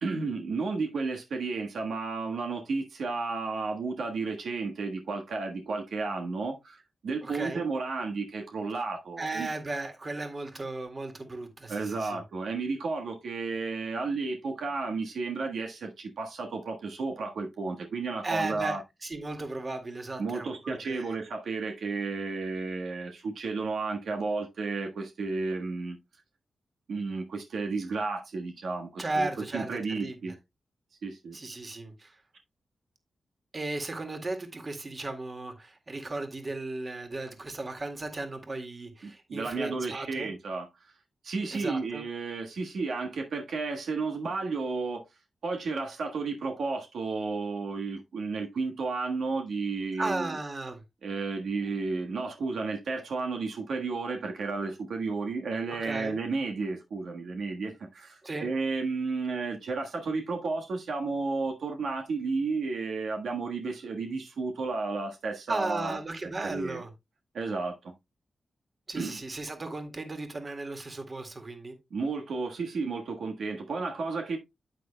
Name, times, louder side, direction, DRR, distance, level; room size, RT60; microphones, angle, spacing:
voice 1, 0.0-9.5 11.7-18.8 20.2-26.0 26.9-30.3 31.0-31.4 39.3-40.7 41.2-45.1 45.4-50.4 51.0-66.0 66.4-66.8 67.3-67.8 68.9-69.2 71.9-74.4, right 4 dB, 80° right, 1.4 m, -32 dB
voice 2, 7.2-7.6 9.2-12.2 18.2-21.2 29.0-30.3 31.3-32.2 33.5-40.3 41.5-42.0 50.0-50.8 55.7-56.2 58.2-58.5 65.5-66.9 68.9-71.8, right 2 dB, 35° right, 1.9 m, -35 dB
9.1 x 8.6 x 2.2 m
cardioid pair, 90°, 0 cm